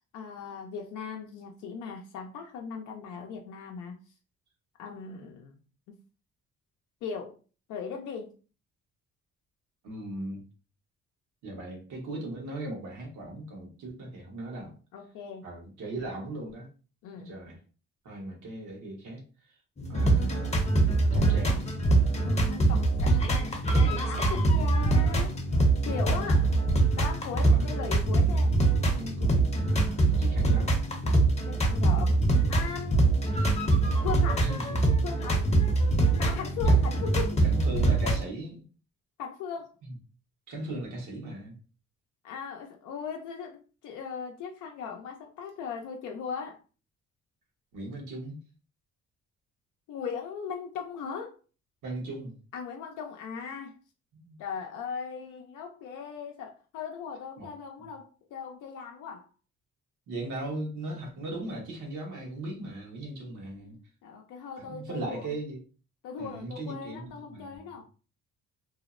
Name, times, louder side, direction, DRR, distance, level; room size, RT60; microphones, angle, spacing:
voice 1, 0.1-4.0 4.8-5.6 7.0-7.4 7.7-8.3 14.9-15.5 17.0-17.3 22.2-26.6 26.9-28.6 31.5-33.0 34.0-34.5 35.0-35.5 36.2-37.4 39.2-39.7 42.2-46.6 49.9-51.4 52.5-53.8 54.4-59.3 63.2-65.3 66.0-67.8, left 6 dB, 90° left, 0.5 m, -38 dB
voice 2, 9.8-10.4 11.4-14.8 15.4-16.7 17.2-17.6 18.0-19.6 19.9-20.5 21.1-21.7 27.4-28.0 28.9-30.7 34.4-34.7 36.6-37.0 37.4-38.6 39.8-39.9 40.5-41.5 47.7-48.4 51.8-52.3 54.1-54.4 57.4-57.5 57.8-57.9 60.1-63.8 64.6-65.6 66.2-67.8, right 2 dB, 80° right, 1.1 m, -38 dB
sound 1, 19.8-38.2, right 2 dB, 20° left, 0.6 m, -24 dB
2.7 x 2.0 x 2.4 m
cardioid pair, 90°, 30 cm